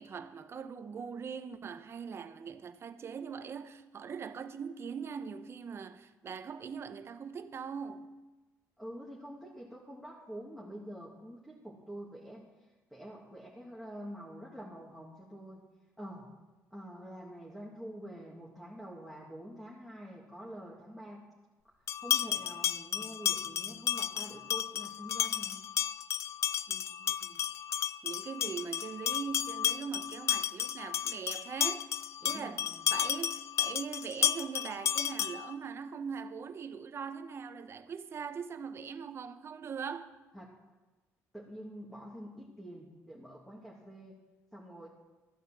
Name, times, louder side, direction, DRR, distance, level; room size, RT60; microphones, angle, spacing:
voice 1, 0.0-8.2 26.7-27.4 28.0-40.2, right 6 dB, 45° right, 1.0 m, -41 dB
voice 2, 8.8-12.5 12.9-15.6 16.0-16.3 16.7-21.2 22.0-25.6 32.2-32.8 40.3-40.5 41.3-44.1 44.5-44.9, equal, ahead, 2.3 m, -46 dB
sound 1, 21.9-35.5, left 9 dB, 50° left, 0.5 m, -33 dB
14.0 x 9.1 x 7.6 m
cardioid pair, 100°, 6 cm